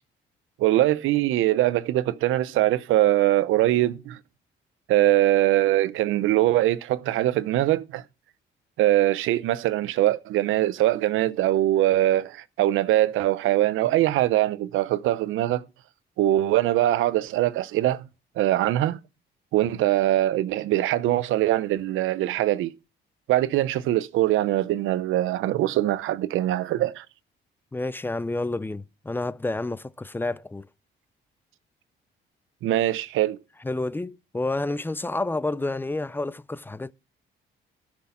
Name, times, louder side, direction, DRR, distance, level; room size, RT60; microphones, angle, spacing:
voice 1, 0.6-4.2 4.9-8.0 8.8-15.6 16.2-18.1 18.4-19.0 19.5-22.7 23.3-27.0 32.6-33.4, right 14 dB, 90° right, 0.7 m, -22 dB
voice 2, 27.7-30.7 33.6-36.9, left 2 dB, 10° left, 0.4 m, -29 dB
13.0 x 6.2 x 4.3 m
cardioid pair, 90°, 20 cm